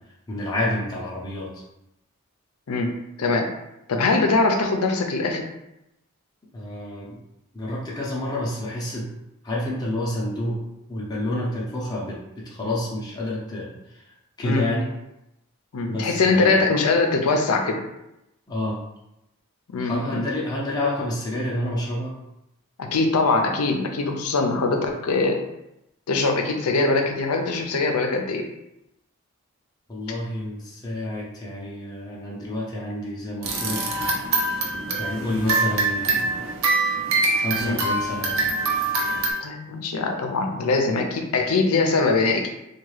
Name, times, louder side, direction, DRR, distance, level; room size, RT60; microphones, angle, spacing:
voice 1, 0.3-1.6 6.5-7.2 7.5-9.1 9.4-10.6 10.9-14.9 15.9-16.7 18.5-18.8 19.8-22.2 29.9-33.8 35.0-36.4 37.3-38.4, left 1 dB, 20° left, -5 dB, 0.6 m, -29 dB
voice 2, 3.9-5.4 14.4-14.6 15.7-17.8 19.7-20.2 22.8-25.4 26.1-28.5 37.6-37.8 39.4-42.5, left 3 dB, 85° left, 4 dB, 0.5 m, -22 dB
sound 1, 33.4-39.3, right 3 dB, 65° right, 0.7 m, -24 dB
3.5 x 2.3 x 3.2 m, 0.88 s
head